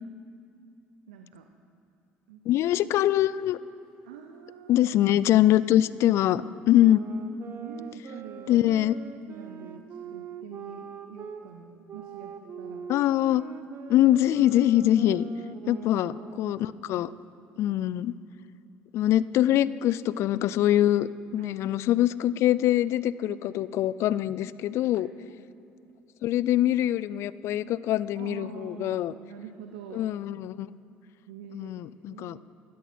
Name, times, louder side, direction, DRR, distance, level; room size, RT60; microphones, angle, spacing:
voice 1, 1.1-1.5 2.3-2.4 4.0-5.0 6.0-6.2 7.6-8.6 9.3-12.8 15.5-16.0 21.4-21.6 23.3-23.6 25.0-25.1 25.4-25.5 28.1-30.1 31.3-31.8 32.1-32.4, right 7 dB, 90° right, 6 dB, 0.6 m, -45 dB
voice 2, 2.5-3.6 4.7-7.0 8.5-8.9 12.9-13.4 13.9-15.2 15.7-17.1 17.6-18.1 18.9-25.1 26.2-29.1 29.9-30.7 31.5-32.4, left 13 dB, 60° left, 18 dB, 0.3 m, -23 dB
sound 1, 6.7-11.4 11.9-16.8, right 6 dB, 45° right, 0.7 m, -43 dB
12.5 x 12.0 x 4.4 m, 2.6 s
hypercardioid pair, 70°, 5 cm